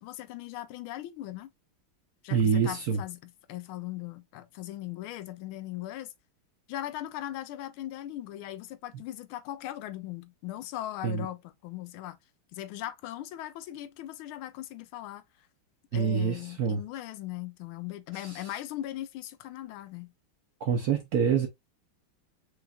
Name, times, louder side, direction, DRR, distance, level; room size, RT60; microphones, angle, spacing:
voice 1, 0.0-1.5 2.2-6.1 6.7-12.2 12.5-15.2 15.9-20.1, left 14 dB, 85° left, 1.4 m, -39 dB
voice 2, 2.3-3.0 11.0-11.3 15.9-16.8 18.2-18.5 20.6-21.5, right 6 dB, 70° right, 0.9 m, -26 dB
4.9 x 3.1 x 2.3 m
omnidirectional pair, 2.3 m